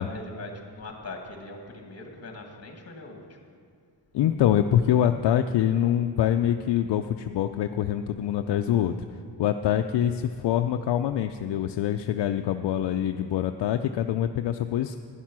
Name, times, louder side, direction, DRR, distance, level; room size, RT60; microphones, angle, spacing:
voice 1, 0.0-3.4, left 2 dB, 35° left, 3 dB, 1.8 m, -41 dB
voice 2, 4.1-8.9 9.4-15.0, left 10 dB, 70° left, 7 dB, 0.5 m, -25 dB
11.5 x 10.0 x 6.1 m, 2.1 s
wide cardioid pair, 150°, 44 cm